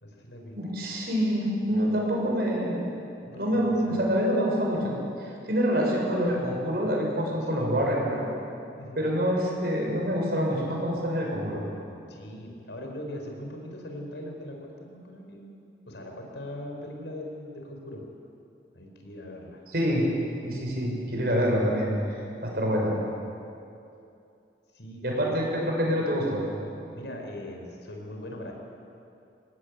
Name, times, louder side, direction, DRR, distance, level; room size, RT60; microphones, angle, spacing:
voice 1, 0.0-0.5 3.1-4.0 7.4-7.8 8.8-9.0 12.1-18.0 18.7-19.6 24.7-25.0 25.3-25.4 26.9-28.5, left 1 dB, 80° left, 1 dB, 5.1 m, -40 dB
voice 2, 0.5-2.9 3.3-4.9 5.2-8.3 9.0-11.6 19.7-20.1 20.4-22.9 25.0-26.4, equal, 55° right, -1 dB, 6.7 m, -26 dB
25.0 x 19.5 x 8.5 m, 2.7 s
head